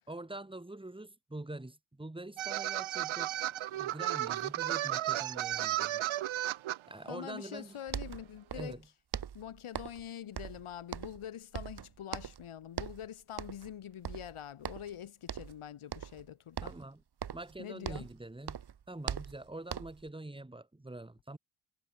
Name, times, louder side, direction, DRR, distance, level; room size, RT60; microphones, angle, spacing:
voice 1, 0.1-3.3 3.7-6.0 6.9-7.8 8.6-8.9 16.6-17.0 17.3-18.6 18.9-21.4, right 2 dB, 10° right, 6.8 m, -45 dB
sound 1, 2.4-6.8, right 14 dB, 70° right, 0.8 m, -34 dB
voice 2, 7.1-8.8 9.3-16.7 17.6-18.1, left 10 dB, 75° left, 6.5 m, -45 dB
sound 2, 7.6-7.7 7.9-8.8 9.1-10.1 10.4-11.3 11.5-12.5 12.7-13.1 13.4-13.7 14.0-15.0 15.3-15.6 15.9-16.3 16.6-18.2 18.5-20.1, right 8 dB, 50° right, 2.9 m, -41 dB
wide cardioid pair, 160°, 50 cm